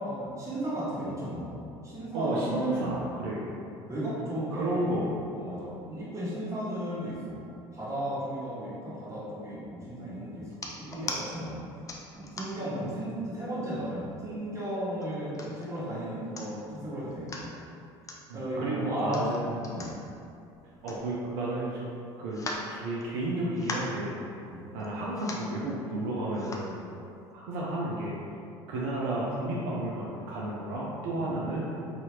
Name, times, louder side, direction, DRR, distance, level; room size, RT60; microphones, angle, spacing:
voice 1, 0.0-1.5 1.8-3.1 3.9-7.4 7.7-11.6 12.1-17.5 18.3-19.9 24.4-24.6 31.2-31.3, right 1 dB, 25° right, -10 dB, 1.3 m, -35 dB
voice 2, 2.1-3.5 4.5-5.1 18.3-19.6 20.8-21.9 22.2-22.4 22.7-24.1 24.7-26.8 27.3-28.2 28.7-31.8, right 1 dB, 70° right, -5 dB, 0.5 m, -32 dB
sound 1, 10.5-11.2 11.9-12.7 13.3-13.4 13.7-14.4 15.0-15.7 16.1-16.2 16.4-16.7 17.1-17.5 18.0-18.2 19.0-21.5 21.8-21.9 22.3-23.3 23.5-24.0 24.8-24.9 25.1-25.5 26.3-26.7 27.3-27.4, left 2 dB, 25° left, 0.4 m, -39 dB
2.7 x 2.4 x 2.9 m, 2.6 s
hypercardioid pair, 75°, 14 cm